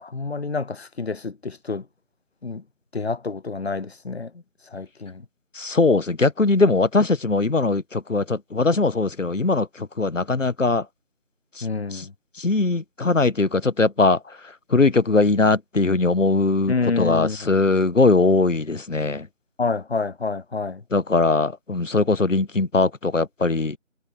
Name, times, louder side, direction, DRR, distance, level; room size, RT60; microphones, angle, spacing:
voice 1, 0.0-1.9 2.4-2.6 2.9-5.2 11.6-12.1 16.7-17.4 19.6-20.8, left 4 dB, 55° left, 0.6 m, -28 dB
voice 2, 5.5-10.9 11.5-12.1 12.4-19.3 20.9-23.8, left 3 dB, 80° left, 1.4 m, -21 dB
figure-of-eight pair, 175°, 37 cm